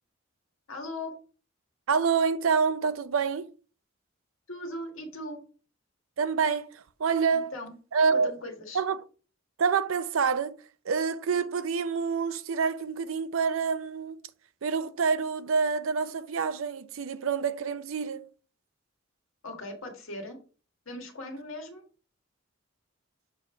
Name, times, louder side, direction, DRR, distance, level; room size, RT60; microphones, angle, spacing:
voice 1, 0.7-1.1 4.5-5.4 7.3-7.7 8.1-8.8 19.4-20.4 20.8-21.8, left 1 dB, 90° left, 1.5 m, -39 dB
voice 2, 1.9-3.5 6.2-7.5 7.9-8.3 8.7-9.0 9.6-14.2 14.6-18.3, right 5 dB, 90° right, 0.5 m, -27 dB
6.9 x 3.2 x 4.9 m
head